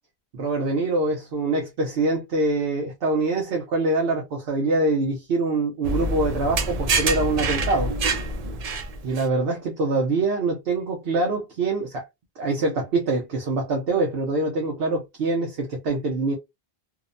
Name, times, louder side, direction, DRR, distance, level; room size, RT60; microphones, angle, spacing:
voice 1, 0.3-7.9 9.0-12.0 12.4-16.3, right 2 dB, 70° right, 0.9 m, -24 dB
sound 1, 5.8-9.2, right 2 dB, 50° right, 0.5 m, -26 dB
2.7 x 2.1 x 2.5 m
omnidirectional pair, 1.0 m